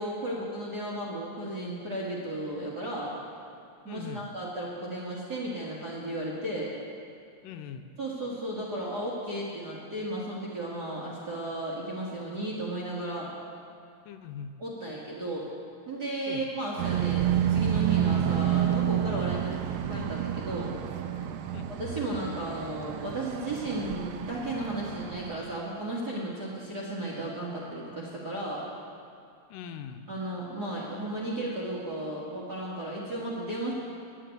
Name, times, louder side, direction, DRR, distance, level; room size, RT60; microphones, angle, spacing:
voice 1, 0.0-3.1 3.8-6.7 8.0-13.3 14.6-15.5 15.9-19.5 19.9-20.7 21.6-28.7 30.1-33.7, right 1 dB, 40° right, -6 dB, 1.5 m, -34 dB
voice 2, 3.9-4.3 7.4-7.9 14.1-14.5 16.3-16.4 21.5-21.7 29.5-30.1, left 8 dB, 85° left, 8 dB, 2.2 m, -41 dB
sound 1, 16.8-25.4, right 10 dB, 85° right, 2.4 m, -29 dB
10.5 x 7.8 x 9.0 m, 2.5 s
omnidirectional pair, 3.9 m